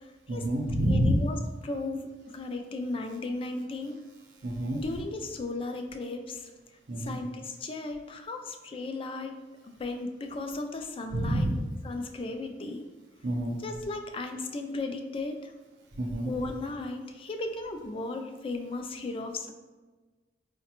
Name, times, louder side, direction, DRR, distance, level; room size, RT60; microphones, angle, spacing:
voice 1, 0.3-1.2 4.4-4.8 6.9-7.2 11.1-11.6 13.2-13.6 16.0-16.3, equal, 85° right, 2 dB, 0.6 m, -27 dB
voice 2, 0.9-4.0 4.7-6.5 7.0-9.3 9.7-11.5 11.8-12.9 13.6-15.5 16.3-19.5, left 2 dB, 30° left, 5 dB, 0.3 m, -35 dB
4.7 x 2.1 x 2.9 m, 1.3 s
head